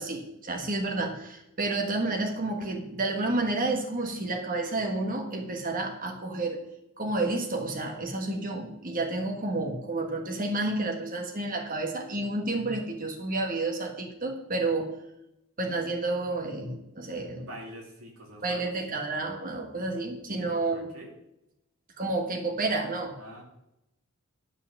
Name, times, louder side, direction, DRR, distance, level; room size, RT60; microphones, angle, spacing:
voice 1, 0.0-6.6 7.0-14.9 15.6-17.5 18.4-20.9 22.0-23.2, right 2 dB, 40° right, 2 dB, 1.4 m, -30 dB
voice 2, 17.4-18.7 20.4-21.1 23.2-23.4, equal, 70° right, 0 dB, 2.4 m, -45 dB
9.8 x 5.9 x 5.9 m, 0.86 s
head